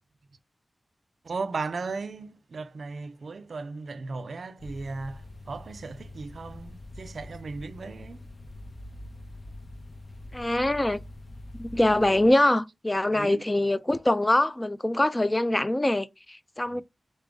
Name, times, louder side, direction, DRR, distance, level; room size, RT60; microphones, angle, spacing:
voice 1, 1.2-8.3 13.1-13.4 16.7-16.8, right 4 dB, 70° right, 0.4 m, -36 dB
sound 1, 4.6-12.3, left 1 dB, 50° left, 0.7 m, -44 dB
voice 2, 10.3-11.0 11.6-16.8, left 1 dB, 20° left, 0.4 m, -24 dB
4.0 x 3.5 x 3.6 m
wide cardioid pair, 85°, 0 cm